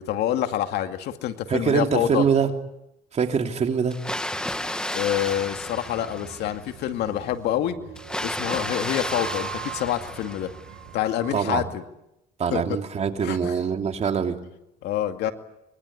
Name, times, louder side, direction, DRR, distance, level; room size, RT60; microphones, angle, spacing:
voice 1, 0.0-2.2 4.9-7.8 8.2-10.5 10.9-11.8 12.5-12.8 13.2-13.5 14.8-15.3, left 11 dB, 80° left, 7 dB, 2.3 m, -27 dB
voice 2, 1.5-2.5 3.1-4.1 11.3-11.7 12.4-14.4, right 6 dB, 40° right, 5 dB, 3.0 m, -24 dB
Water, 3.9-6.7 8.0-10.8, left 1 dB, 5° left, 2.0 m, -32 dB
sound 1, 5.1-11.3, right 10 dB, 75° right, 6.9 m, -41 dB
24.5 x 23.5 x 9.7 m, 0.86 s
cardioid pair, 110°, 17 cm